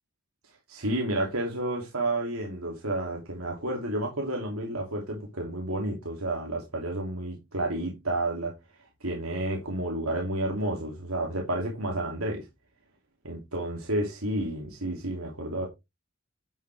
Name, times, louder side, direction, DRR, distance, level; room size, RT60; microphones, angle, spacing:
voice 1, 0.7-8.5 9.0-12.5 13.2-15.7, right 1 dB, 85° right, 2.9 m, -31 dB
10.5 x 7.8 x 3.5 m
head